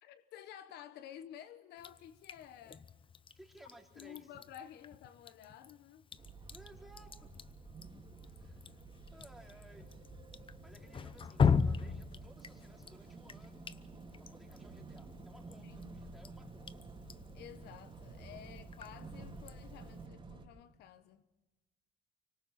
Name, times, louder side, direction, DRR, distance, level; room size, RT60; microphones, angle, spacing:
voice 1, 0.0-2.9 4.0-6.1 15.6-15.9 17.3-21.2, left 10 dB, 75° left, 1.1 m, -52 dB
Drip, 1.8-20.1, left 6 dB, 30° left, 0.8 m, -40 dB
voice 2, 3.3-4.3 6.5-7.3 8.2-8.6 9.1-9.9 10.6-13.7 14.2-16.7, right 1 dB, ahead, 3.6 m, -59 dB
sound 1, 4.3-4.6 4.9-5.1 5.5-5.7 6.1-6.4 6.7-6.9 7.4-7.6 8.0-8.2 8.6-8.8 9.2-9.4 9.8-10.0 10.4-10.6 11.0-11.2 11.5-11.8 12.2-12.5 12.8-13.0 13.4-13.6 14.0-14.2 14.6-14.8 15.2-15.4 15.8-16.1 16.5-16.7 17.1-17.3 17.7-17.9 18.3-18.5 18.9-19.2 19.6-19.7, left 4 dB, 50° left, 4.9 m, -62 dB
sound 2, 6.2-20.5, right 3 dB, 30° right, 3.7 m, -52 dB
25.5 x 24.5 x 4.2 m
cardioid pair, 110°, 17 cm